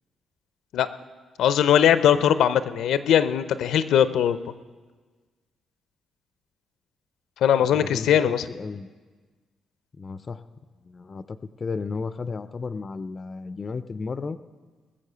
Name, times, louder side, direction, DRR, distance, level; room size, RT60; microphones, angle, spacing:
voice 1, 1.4-4.4 7.4-8.4, left 9 dB, 85° left, 13 dB, 0.5 m, -20 dB
voice 2, 7.6-8.9 10.0-10.4 10.8-14.4, left 4 dB, 25° left, 13 dB, 0.3 m, -34 dB
20.0 x 7.3 x 6.8 m, 1.4 s
cardioid pair, 170°, 0 cm